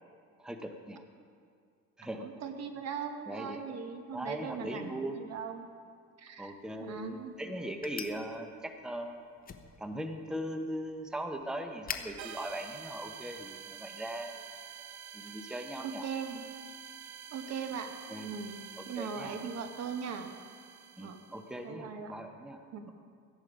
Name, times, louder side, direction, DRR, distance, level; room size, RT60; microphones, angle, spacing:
voice 1, 0.4-1.0 2.0-2.3 3.3-3.8 4.1-5.2 6.4-9.2 9.8-14.4 15.1-16.1 18.1-18.3 18.8-19.4 21.0-22.9, right 1 dB, ahead, 5 dB, 0.9 m, -40 dB
voice 2, 2.2-5.7 6.2-6.5 6.8-7.3 15.8-16.4 17.3-17.9 18.2-20.3 21.0-21.2 21.6-22.1 22.7-22.9, right 6 dB, 55° right, 6 dB, 1.3 m, -39 dB
sound 1, 6.4-13.6, left 6 dB, 30° left, 0.9 m, -48 dB
sound 2, 12.2-21.6, right 8 dB, 80° right, 1.0 m, -48 dB
14.5 x 10.5 x 5.1 m, 2.2 s
cardioid pair, 105°, 30 cm